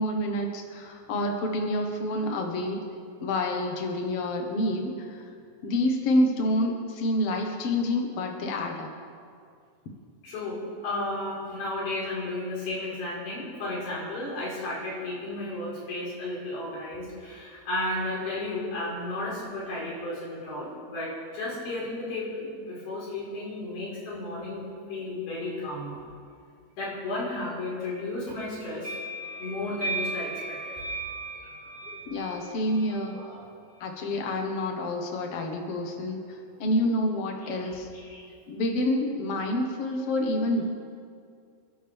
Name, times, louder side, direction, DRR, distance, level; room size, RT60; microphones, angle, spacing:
voice 1, 0.0-2.8 3.2-5.2 5.6-8.9 32.1-33.2 33.8-37.9 38.5-40.7, left 1 dB, 75° left, 2 dB, 1.3 m, -28 dB
voice 2, 10.2-26.0 26.7-29.0 29.4-30.8 31.8-32.5 32.9-33.5 37.9-38.4, left 2 dB, 60° left, -6 dB, 6.5 m, -34 dB
sound 1, 28.8-33.3, right 2 dB, 20° right, 3.5 m, -36 dB
28.0 x 11.5 x 3.6 m, 2.2 s
omnidirectional pair, 5.1 m